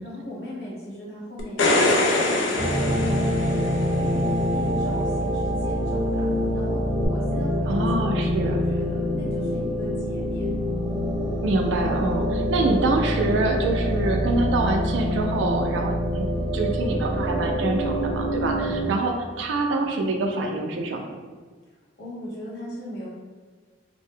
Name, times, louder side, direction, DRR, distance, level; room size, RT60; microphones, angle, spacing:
voice 1, 0.0-4.2 4.5-11.1 18.6-19.0 22.0-23.1, equal, 60° left, -6 dB, 0.9 m, -38 dB
sound 1, 1.4-4.0 7.0-7.1, left 2 dB, 85° left, 0.5 m, -23 dB
sound 2, 2.6-18.8, equal, 10° right, 0.5 m, -25 dB
voice 2, 7.7-8.6 11.4-21.2, right 2 dB, 75° right, 3 dB, 0.3 m, -26 dB
2.6 x 2.1 x 3.6 m, 1.5 s
head